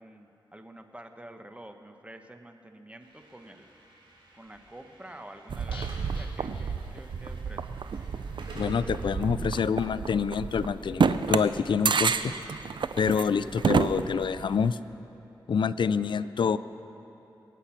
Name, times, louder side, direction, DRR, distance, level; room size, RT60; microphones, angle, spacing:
voice 1, 0.0-3.7 4.3-7.7 13.1-13.3, right 1 dB, 15° right, 6 dB, 1.2 m, -48 dB
Slam / Alarm, 3.0-11.1, right 1 dB, 85° right, 3.4 m, -51 dB
sound 1, 5.5-14.7, right 5 dB, 65° right, 0.5 m, -30 dB
sound 2, 5.7-7.5 7.8-7.9 8.2-8.3, left 3 dB, 85° left, 1.1 m, -50 dB
voice 2, 8.6-12.3 13.0-14.8 15.5-16.6, left 6 dB, 70° left, 14 dB, 0.4 m, -27 dB
23.0 x 8.2 x 5.9 m, 2.9 s
cardioid pair, 55°, 9 cm